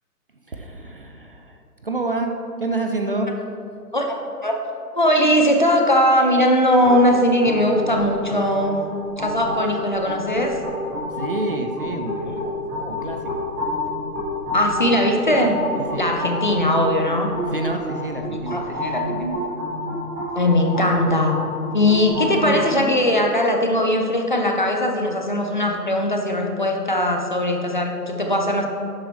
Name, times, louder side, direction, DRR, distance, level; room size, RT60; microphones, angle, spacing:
voice 1, 0.5-2.3 2.6-3.3 11.1-13.4 15.7-16.1 17.5-18.6, right 2 dB, 35° right, 4 dB, 0.5 m, -28 dB
voice 2, 4.9-8.8 9.2-10.6 12.3-13.0 14.5-15.6 16.0-17.3 18.5-19.3 20.3-21.4 21.7-28.7, left 1 dB, 30° left, 2 dB, 0.5 m, -20 dB
sound 1, 6.8-22.6, left 1 dB, 10° right, 1.5 m, -29 dB
11.0 x 7.7 x 3.2 m, 2.6 s
figure-of-eight pair, 145°, 48 cm